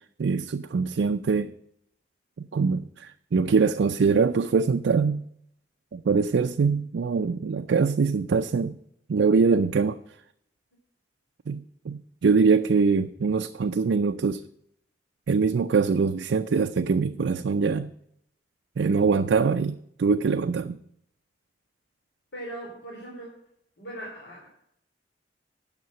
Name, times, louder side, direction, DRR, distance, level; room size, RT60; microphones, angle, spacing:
voice 1, 0.2-1.5 2.4-5.2 5.9-8.8 9.1-10.0 11.5-14.4 15.3-17.9 18.8-20.8, right 5 dB, 80° right, 0.4 m, -23 dB
voice 2, 22.3-23.4 23.8-24.5, right 1 dB, 70° left, 3.4 m, -39 dB
9.5 x 6.6 x 7.6 m
head